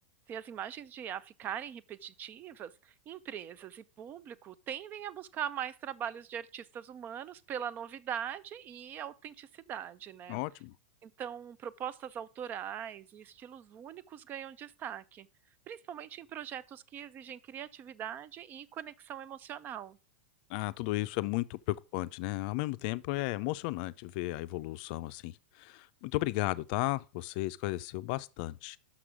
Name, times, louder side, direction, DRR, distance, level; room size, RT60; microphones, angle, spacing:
voice 1, 0.3-10.4 11.0-15.3 15.7-20.0, right 9 dB, 30° right, 0.5 m, -41 dB
voice 2, 10.3-10.8 20.5-28.8, left 19 dB, 50° left, 0.4 m, -34 dB
6.1 x 6.0 x 4.8 m
hypercardioid pair, 125°, 6 cm